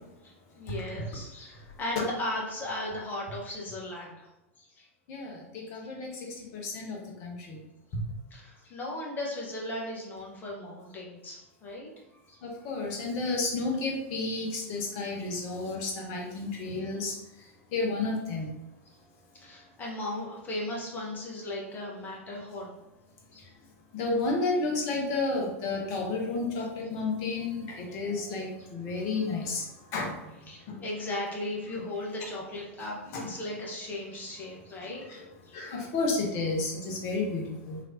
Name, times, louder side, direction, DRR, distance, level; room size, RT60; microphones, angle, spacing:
voice 1, 0.2-4.3 4.6-4.9 8.3-11.9 12.3-12.4 19.3-22.7 23.3-23.5 30.5-35.0 35.5-35.6, left 1 dB, 25° left, -3 dB, 1.1 m, -37 dB
voice 2, 5.1-6.1 6.5-7.6 12.4-17.1 17.7-18.5 23.9-29.6 29.9-30.1 30.7-30.8 33.1-33.3 34.8-35.2 35.5-37.8, left 3 dB, 45° left, 0 dB, 1.0 m, -31 dB
3.2 x 3.0 x 2.7 m, 0.97 s
figure-of-eight pair, 90°, 7 cm